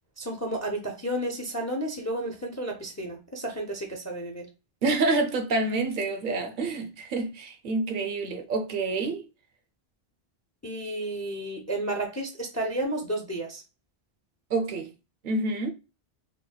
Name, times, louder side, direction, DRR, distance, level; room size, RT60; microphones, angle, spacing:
voice 1, 0.2-4.5 10.6-13.6, right 1 dB, 25° left, 0.3 m, -32 dB
voice 2, 4.8-9.2 14.5-14.9 15.2-15.7, right 3 dB, 60° right, 0.7 m, -27 dB
3.7 x 2.1 x 2.2 m
omnidirectional pair, 1.1 m